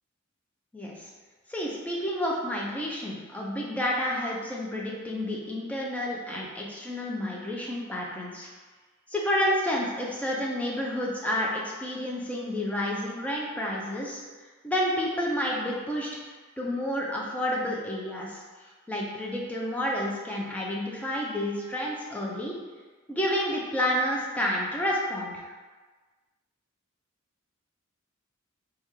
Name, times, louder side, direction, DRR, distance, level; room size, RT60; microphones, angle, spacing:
voice 1, 0.7-1.1 1.5-8.5 9.1-14.2 14.6-16.2 16.6-22.6 23.1-25.5, left 1 dB, 5° left, -3 dB, 0.4 m, -30 dB
3.3 x 2.3 x 3.0 m, 1.4 s
head